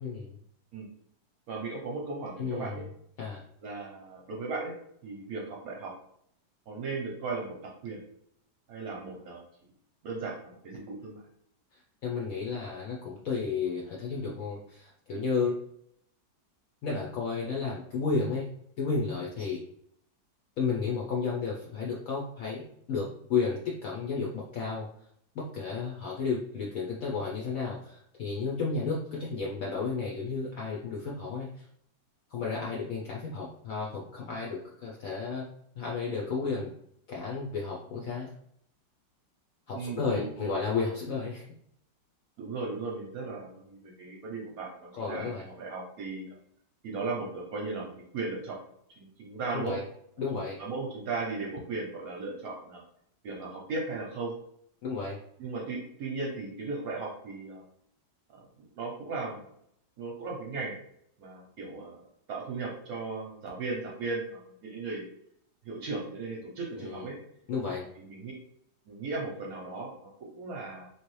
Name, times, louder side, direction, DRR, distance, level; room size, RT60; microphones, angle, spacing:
voice 1, 0.0-0.4 2.4-2.8 3.2-3.4 12.0-15.6 16.8-18.5 18.8-19.6 20.6-24.9 25.3-31.6 32.3-35.5 35.8-36.7 37.1-38.3 39.7-41.4 44.9-45.4 49.5-49.8 50.2-50.6 54.8-55.2 66.8-67.0 67.5-67.8, left 4 dB, 70° left, -3 dB, 0.8 m, -32 dB
voice 2, 1.5-2.8 3.6-4.7 5.0-5.9 6.7-7.5 7.8-8.0 8.7-9.4 10.0-11.2 39.7-40.6 42.4-46.3 46.8-48.6 49.0-49.8 50.6-52.8 53.2-54.3 55.4-57.6 58.6-59.5 60.0-60.8 61.2-62.0 62.3-65.1 65.6-67.1 68.0-68.3 68.9-70.9, right 3 dB, 65° right, -1 dB, 0.9 m, -36 dB
3.1 x 2.6 x 3.0 m, 0.71 s
omnidirectional pair, 2.0 m